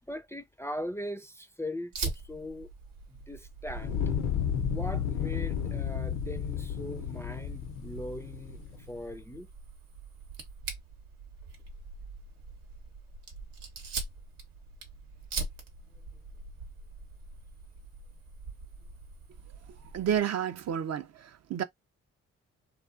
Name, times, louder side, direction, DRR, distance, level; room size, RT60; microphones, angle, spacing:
voice 1, 0.1-2.7 3.1-4.0 4.7-8.6 8.9-9.5, left 1 dB, 10° left, 0.4 m, -40 dB
Fire, 1.9-20.2, right 4 dB, 85° right, 0.8 m, -43 dB
Fire 2, 3.7-8.9, left 8 dB, 80° left, 0.7 m, -32 dB
voice 2, 19.9-21.6, right 9 dB, 55° right, 0.5 m, -30 dB
2.3 x 2.3 x 2.4 m
supercardioid pair, 50°, 33 cm